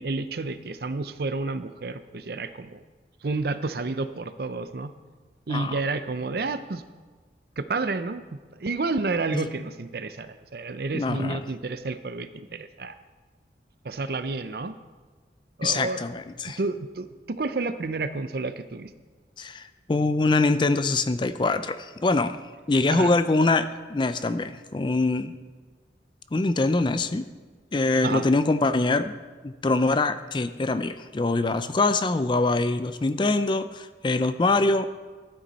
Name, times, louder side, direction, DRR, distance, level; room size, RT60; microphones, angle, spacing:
voice 1, 0.0-2.8 3.2-4.9 5.5-6.8 7.6-8.2 8.6-13.0 13.8-14.7 15.6-16.0 16.6-18.9 22.9-23.1 28.0-28.2, right 3 dB, 55° right, 12 dB, 0.6 m, -30 dB
voice 2, 5.5-5.8 9.3-9.5 10.9-11.4 15.6-16.6 19.4-22.4 22.7-25.3 26.3-27.3 27.7-29.2 29.4-34.9, left 3 dB, 25° left, 12 dB, 0.4 m, -24 dB
14.0 x 9.2 x 4.1 m, 1.4 s
head